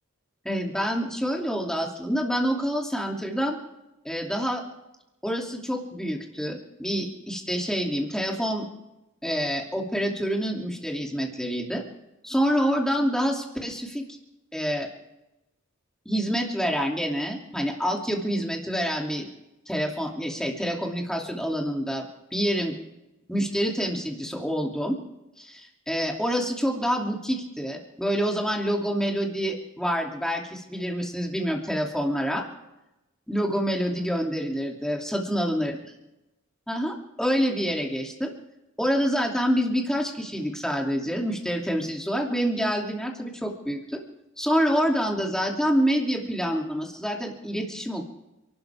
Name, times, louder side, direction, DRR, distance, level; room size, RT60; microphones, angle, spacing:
voice 1, 0.4-3.6 4.0-4.6 5.2-8.7 9.2-11.8 12.2-14.0 14.5-14.9 16.0-19.3 19.7-22.7 23.3-25.0 25.4-32.4 33.3-35.8 36.7-38.3 38.8-44.0 44.4-48.0, equal, 5° left, 0 dB, 2.7 m, -27 dB
30.0 x 12.5 x 3.6 m, 0.94 s
head